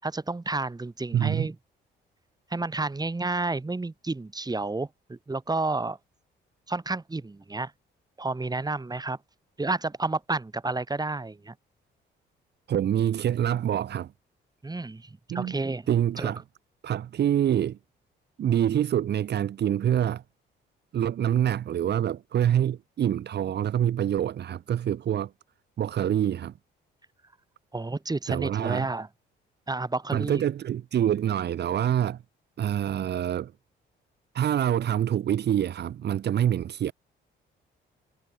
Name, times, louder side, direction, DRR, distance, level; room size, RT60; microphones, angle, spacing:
voice 1, 0.0-1.6 2.5-6.0 6.7-7.7 8.2-9.2 9.6-11.5 14.6-15.9 16.2-16.3 27.7-29.1 29.7-30.4, right 3 dB, 20° right, 6.3 m, -30 dB
voice 2, 1.1-1.5 12.7-14.1 15.3-15.6 15.9-16.4 16.8-17.8 18.4-20.2 20.9-25.3 25.8-26.5 28.3-28.9 30.1-32.2 32.6-33.5 34.3-36.9, right 10 dB, 55° right, 1.0 m, -26 dB
cardioid pair, 90°, 20 cm